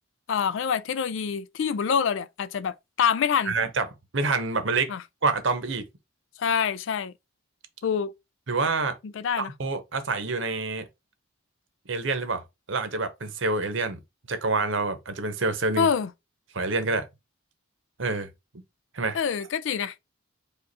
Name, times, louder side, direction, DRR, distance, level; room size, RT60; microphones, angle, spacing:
voice 1, 0.3-3.5 4.9-5.0 6.4-7.1 7.8-8.1 9.0-9.5 15.8-16.1 19.1-19.9, left 7 dB, 60° left, 0.3 m, -26 dB
voice 2, 3.5-3.9 4.1-4.9 5.2-5.8 8.5-9.0 9.4-10.8 11.9-12.4 12.7-14.0 14.3-15.9 16.5-17.1 18.0-18.3 18.9-19.2, right 3 dB, 60° right, 0.9 m, -27 dB
5.1 x 2.4 x 4.0 m
head